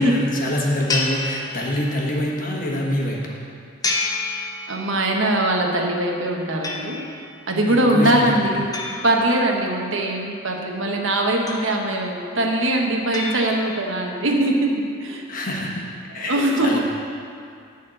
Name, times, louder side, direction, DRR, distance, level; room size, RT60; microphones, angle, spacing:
voice 1, 0.0-3.2 7.7-8.5 15.3-15.9 16.1-16.8, left 1 dB, 40° left, -2 dB, 1.5 m, -25 dB
sound 1, 0.9-2.1 3.8-5.1 6.6-7.3 8.7-9.9 11.5-12.2 13.1-14.0, left 3 dB, 20° left, 0.8 m, -29 dB
voice 2, 4.7-7.1 7.5-8.7 9.0-14.7 15.0-15.2 16.3-16.8, right 1 dB, 75° right, 1 dB, 1.2 m, -21 dB
11.5 x 4.4 x 7.7 m, 2.4 s
head